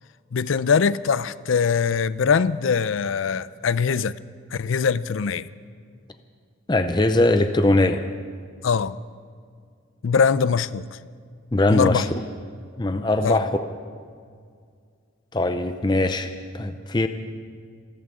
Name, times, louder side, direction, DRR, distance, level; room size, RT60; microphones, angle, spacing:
voice 1, 0.3-4.2 4.5-5.5 8.6-9.0 10.0-10.9 11.7-12.0 13.2-13.4, left 6 dB, 75° left, 0.5 m, -22 dB
voice 2, 6.7-8.0 11.5-12.1 12.8-13.7 15.3-17.1, left 2 dB, 20° left, 0.6 m, -21 dB
26.5 x 14.5 x 3.8 m
head